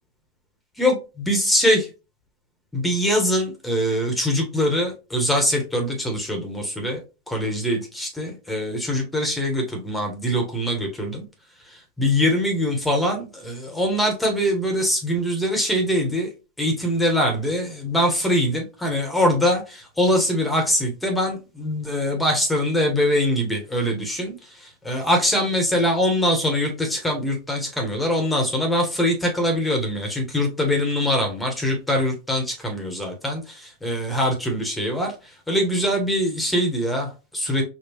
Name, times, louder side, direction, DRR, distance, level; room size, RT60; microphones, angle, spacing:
voice 1, 0.8-1.8 2.7-7.0 7.3-11.2 11.6-16.3 16.6-37.6, equal, 5° left, 1 dB, 1.1 m, -23 dB
4.4 x 2.3 x 2.9 m, 0.30 s
hypercardioid pair, 90°, 0 cm